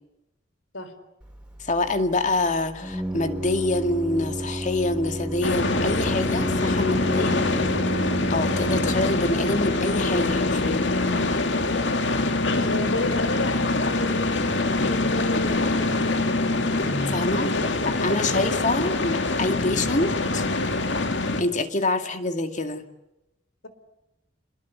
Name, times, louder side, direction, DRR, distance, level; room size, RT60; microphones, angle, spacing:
Organ, 1.2-11.4, right 1 dB, 5° right, 4.7 m, -33 dB
voice 1, 1.6-7.4 8.3-10.9 13.6-13.7 17.0-17.5 17.8-20.5 21.4-22.8, left 2 dB, 40° left, 7 dB, 2.2 m, -26 dB
sound 1, 5.4-21.4, left 2 dB, 65° left, 2.3 m, -24 dB
voice 2, 6.8-7.9 12.4-16.5 17.1-17.7 18.0-18.6 22.0-22.1, left 2 dB, 90° left, 11 dB, 4.3 m, -33 dB
28.5 x 21.0 x 9.5 m, 0.94 s
head